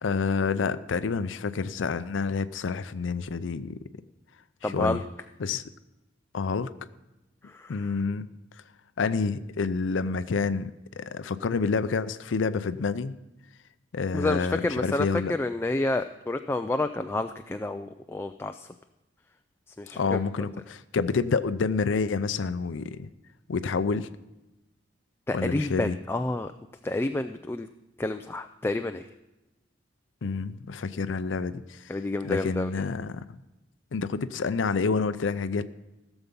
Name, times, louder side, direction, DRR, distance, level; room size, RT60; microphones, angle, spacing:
voice 1, 0.0-3.8 4.6-5.0 5.4-5.6 6.3-6.7 7.7-8.3 9.0-13.2 13.9-15.3 20.0-23.1 23.5-24.1 25.3-26.0 30.2-31.9 32.2-33.3 33.9-35.6, left 4 dB, 90° left, 13 dB, 0.5 m, -28 dB
voice 2, 4.6-5.0 7.4-7.9 14.1-18.7 19.8-20.2 25.3-26.5 26.8-27.7 28.0-29.1 31.9-32.9, left 2 dB, 15° left, 7 dB, 0.3 m, -29 dB
16.0 x 7.1 x 5.4 m, 0.99 s
head